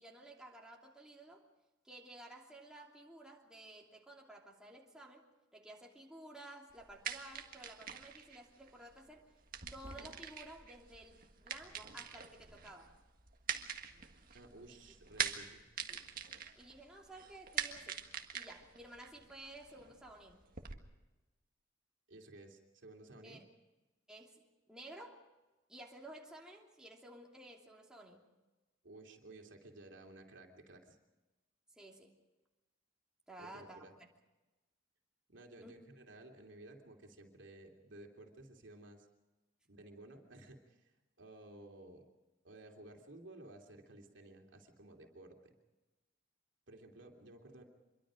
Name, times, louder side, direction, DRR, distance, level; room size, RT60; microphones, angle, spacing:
voice 1, 0.0-1.4 1.8-5.3 5.5-9.3 9.7-12.9 14.8-14.9 15.9-16.0 16.5-18.0 18.3-20.4 23.2-23.4 24.1-25.2 25.7-28.3 31.7-32.2 33.3-33.8 35.6-35.7, right 1 dB, 5° right, -2 dB, 2.9 m, -54 dB
sound 1, 6.7-20.8, right 7 dB, 45° right, 1.7 m, -45 dB
voice 2, 14.3-15.6 22.1-23.4 28.8-31.0 33.4-33.9 35.3-39.1 39.7-40.9 41.2-42.1 42.4-45.5 46.7-47.6, right 2 dB, 65° right, 2 dB, 3.0 m, -55 dB
26.0 x 23.5 x 5.1 m, 1.1 s
head